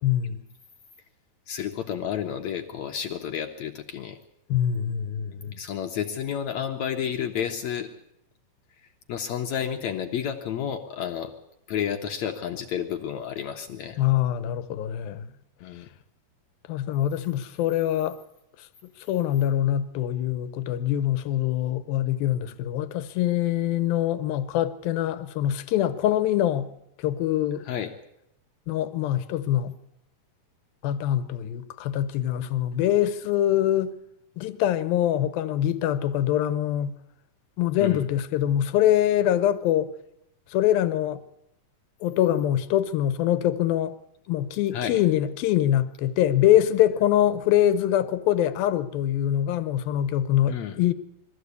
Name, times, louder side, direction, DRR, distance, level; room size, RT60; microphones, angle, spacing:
voice 1, 0.0-0.4 4.5-5.6 14.0-15.3 16.7-18.2 19.1-26.7 27.0-27.6 28.7-29.7 30.8-33.9 34.4-37.0 37.6-39.9 40.5-41.2 42.0-44.0 44.3-50.9, left 12 dB, 85° left, 2.7 m, -24 dB
voice 2, 1.5-4.2 5.6-7.9 9.1-11.3 11.7-14.0 15.6-15.9 27.6-27.9 37.8-38.0 44.7-45.0 50.5-50.8, left 9 dB, 65° left, 1.9 m, -31 dB
22.0 x 14.0 x 8.3 m
omnidirectional pair, 4.1 m